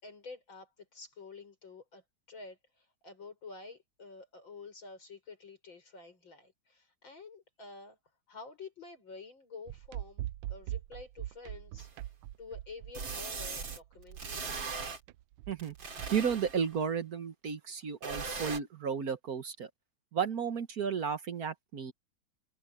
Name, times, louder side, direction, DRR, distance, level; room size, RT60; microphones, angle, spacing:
voice 1, 0.0-8.0 8.3-12.1 12.4-14.4, left 4 dB, 75° left, 7.6 m, -49 dB
sound 1, 9.7-16.5, right 14 dB, 90° right, 1.4 m, -42 dB
sound 2, 11.8-11.9 12.9-13.8 14.2-15.0 15.6-16.7 18.0-18.6, right 4 dB, 70° right, 3.5 m, -39 dB
voice 2, 16.1-19.7 20.1-21.9, right 7 dB, 55° right, 1.5 m, -33 dB
omnidirectional pair, 2.1 m